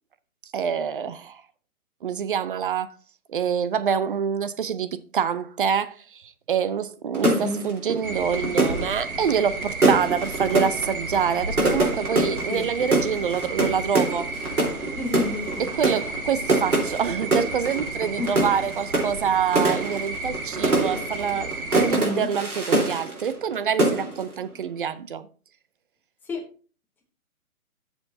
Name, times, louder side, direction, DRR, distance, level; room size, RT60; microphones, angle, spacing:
voice 1, 0.5-1.4 2.0-2.9 3.3-14.3 15.6-25.3, right 7 dB, 40° right, 0.6 m, -26 dB
sound 1, 7.1-23.5 23.8-24.3, right 2 dB, 90° right, 4.0 m, -25 dB
voice 2, 7.2-7.6 12.5-12.7 15.0-15.7 18.2-18.3 21.9-22.3 26.3-26.4, left 3 dB, 5° left, 0.9 m, -29 dB
sound 2, 8.0-21.9, right 2 dB, 70° right, 2.1 m, -33 dB
13.0 x 7.0 x 2.7 m
figure-of-eight pair, 145°, 44 cm